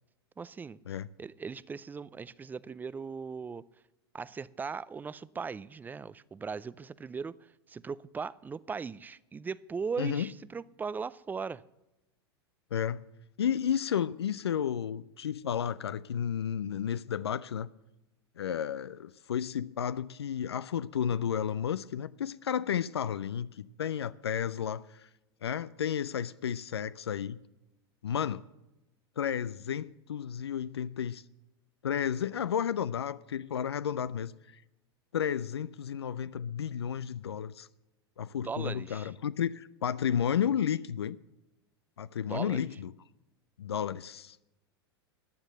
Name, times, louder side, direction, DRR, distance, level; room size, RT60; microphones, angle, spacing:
voice 1, 0.4-0.8 1.2-3.6 4.1-11.6 38.4-39.1 42.3-42.7, right 5 dB, 15° right, 0.4 m, -38 dB
voice 2, 10.0-10.3 12.7-13.0 13.4-17.7 18.4-25.1 25.4-27.4 28.0-28.4 29.2-31.2 31.8-34.6 35.1-37.7 38.2-41.2 42.0-42.9 43.6-44.4, left 8 dB, 80° left, 0.4 m, -32 dB
14.0 x 9.9 x 6.6 m
hypercardioid pair, 95°, 13 cm